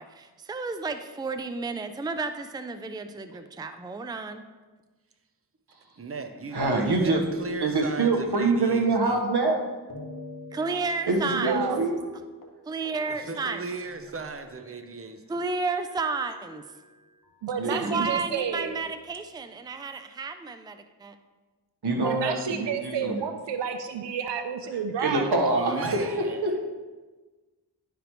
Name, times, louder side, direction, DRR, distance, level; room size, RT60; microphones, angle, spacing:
voice 1, 0.0-4.5 10.5-11.6 12.7-13.6 15.3-16.6 17.6-21.2, right 4 dB, 10° right, 8 dB, 0.5 m, -32 dB
voice 2, 6.0-6.6 6.8-9.2 13.1-15.4 25.5-26.4, right 4 dB, 35° right, 6 dB, 0.8 m, -37 dB
voice 3, 6.5-7.2 7.6-9.6 11.1-12.1 17.6-18.1 21.8-23.2 25.0-26.6, right 3 dB, 70° right, 1 dB, 1.4 m, -25 dB
sound 1, 6.6-9.5 9.9-11.7 12.0-12.1 12.4-12.6 12.9-13.0 13.3-15.0 15.8-17.3 18.1-19.0, left 2 dB, 50° left, 1.5 m, -46 dB
voice 4, 11.3-11.8 17.4-18.8 22.0-25.2, right 7 dB, 85° right, 7 dB, 0.6 m, -31 dB
11.5 x 5.1 x 3.1 m, 1.3 s
cardioid pair, 50°, 41 cm